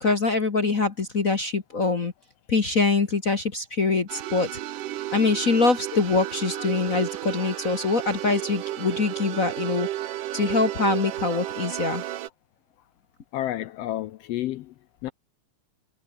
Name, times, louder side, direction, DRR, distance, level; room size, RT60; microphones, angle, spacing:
voice 1, 0.0-2.1 2.5-4.5 5.1-9.9 10.3-12.0, left 3 dB, 40° left, 1.3 m, -24 dB
sound 1, 4.1-12.3, right 13 dB, 90° right, 2.7 m, -33 dB
voice 2, 13.3-14.7 15.0-15.1, left 13 dB, 80° left, 1.4 m, -30 dB
omnidirectional pair, 3.6 m